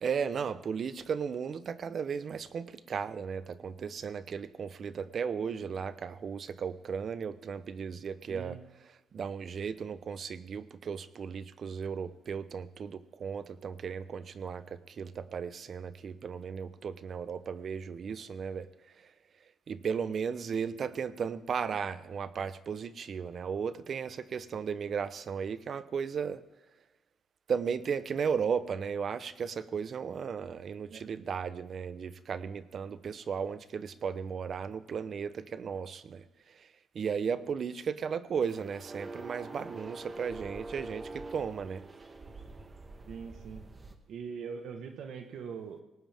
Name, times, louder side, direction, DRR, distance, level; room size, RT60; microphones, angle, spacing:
voice 1, 0.0-8.6 9.1-18.7 19.7-26.4 27.5-36.2 36.9-41.8, right 6 dB, 50° right, 14 dB, 0.9 m, -35 dB
voice 2, 8.3-8.6 30.9-31.0 43.1-43.7 44.1-45.8, right 6 dB, 70° right, 5 dB, 1.4 m, -42 dB
sound 1, 38.5-43.9, right 2 dB, 30° right, 1.6 m, -45 dB
18.5 x 18.0 x 3.6 m, 1.1 s
cardioid pair, 90°, 0 cm